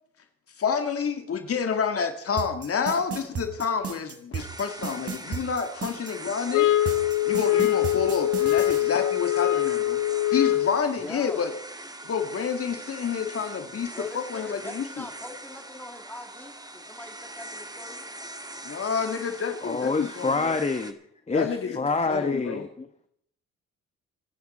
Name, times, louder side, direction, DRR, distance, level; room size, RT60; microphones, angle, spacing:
voice 1, 0.6-6.7 7.3-10.0 10.3-11.5 12.0-15.1 18.6-20.5 21.3-21.8 22.1-22.7, left 6 dB, 50° left, 6 dB, 1.9 m, -29 dB
sound 1, 2.4-6.1 6.9-8.8, right 6 dB, 50° right, 4.5 m, -33 dB
sound 2, 4.4-20.9, right 1 dB, 15° right, 1.7 m, -42 dB
sound 3, 6.5-10.9, left 14 dB, 85° left, 1.1 m, -23 dB
voice 2, 10.9-11.4 13.9-18.0, left 1 dB, 5° left, 3 dB, 3.2 m, -42 dB
voice 3, 19.6-20.9 21.3-22.9, left 3 dB, 20° left, 7 dB, 1.3 m, -27 dB
27.5 x 9.5 x 4.3 m, 0.66 s
cardioid pair, 90°, 30 cm